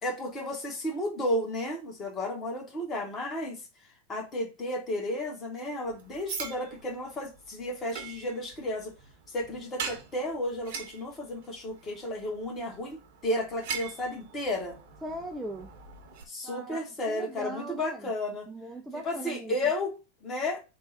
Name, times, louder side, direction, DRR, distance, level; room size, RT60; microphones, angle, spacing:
voice 1, 0.0-3.6 4.1-8.9 9.3-14.8 16.3-18.5 18.9-20.6, left 1 dB, 25° left, 1.3 m, -33 dB
sound 1, 5.8-16.2, right 6 dB, 50° right, 1.0 m, -43 dB
voice 2, 15.0-15.7 16.4-18.1 18.5-19.6, right 1 dB, 10° right, 0.5 m, -39 dB
3.7 x 2.3 x 3.9 m
figure-of-eight pair, 90°, 0 cm